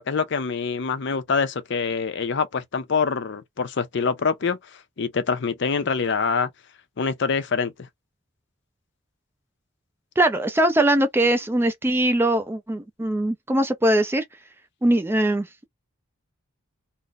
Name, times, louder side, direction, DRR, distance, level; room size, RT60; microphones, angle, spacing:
voice 1, 0.0-4.6 5.0-6.5 7.0-7.7, left 5 dB, 55° left, 0.5 m, -25 dB
voice 2, 10.2-14.2 14.8-15.7, right 1 dB, 10° right, 0.3 m, -21 dB
2.4 x 2.0 x 3.9 m
head